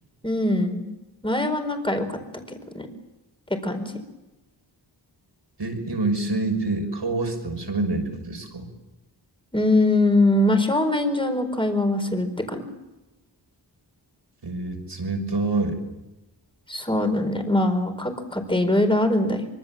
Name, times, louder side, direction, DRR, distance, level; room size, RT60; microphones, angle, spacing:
voice 1, 0.2-0.8 1.2-2.2 2.5-2.9 3.6-4.0 9.5-12.7 16.7-19.5, left 1 dB, 10° left, 5 dB, 4.5 m, -22 dB
voice 2, 5.6-8.7 14.4-15.8, right 2 dB, 65° right, 4 dB, 6.2 m, -26 dB
25.0 x 24.0 x 7.6 m, 1.0 s
wide cardioid pair, 80°, 45 cm